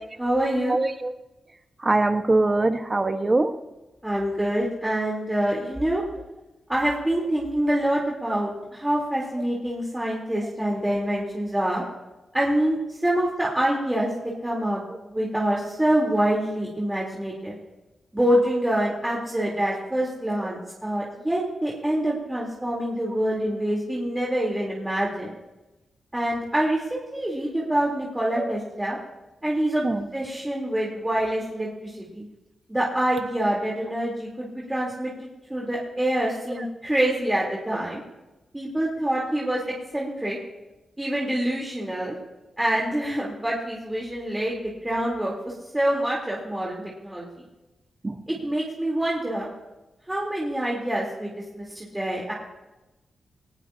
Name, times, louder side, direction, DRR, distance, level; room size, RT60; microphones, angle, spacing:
voice 1, 0.2-0.8 4.0-6.0 6.7-11.8 12.3-14.1 14.4-14.8 15.1-17.6 18.1-25.3 26.1-29.0 29.4-29.9 30.1-32.3 32.7-35.1 35.5-38.0 38.5-39.6 39.9-40.4 41.0-42.2 42.6-47.3 48.3-49.5 50.1-52.3, right 1 dB, 15° right, -4 dB, 3.7 m, -26 dB
voice 2, 0.7-1.1 1.8-3.5 28.4-28.5 29.8-30.0 48.0-48.2, right 2 dB, 30° right, 6 dB, 1.4 m, -22 dB
19.5 x 19.0 x 2.9 m, 1.0 s
cardioid pair, 60°, 0 cm